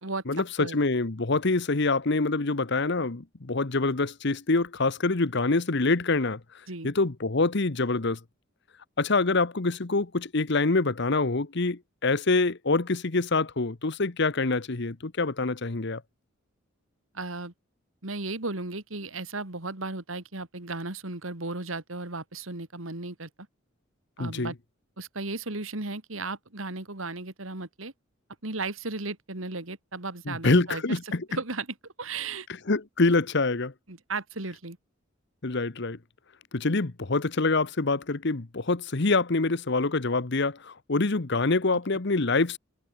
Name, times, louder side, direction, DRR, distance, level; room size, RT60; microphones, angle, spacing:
voice 1, 0.3-6.4 6.8-8.2 9.0-16.0 24.2-24.5 30.3-31.2 32.7-33.7 35.4-36.0 36.5-42.6, left 3 dB, 60° left, 1.1 m, -25 dB
voice 2, 17.1-17.5 18.0-23.3 24.2-24.5 25.0-27.9 28.4-31.0 31.3-31.7 32.0-32.5 33.9-34.8, right 3 dB, 85° right, 2.9 m, -35 dB
head